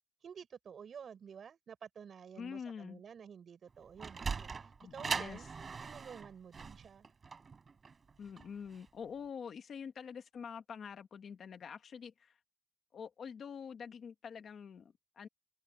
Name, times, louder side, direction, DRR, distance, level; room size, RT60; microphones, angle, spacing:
voice 1, 0.2-4.6 4.9-5.5 5.8-7.1, right 7 dB, 75° right, 6.4 m, -51 dB
voice 2, 2.4-3.0 4.8-5.5 8.2-12.4 12.9-15.3, left 6 dB, 90° left, 1.5 m, -46 dB
Sliding door, 3.7-8.9, right 5 dB, 45° right, 4.1 m, -41 dB
wide cardioid pair, 165°, 0 cm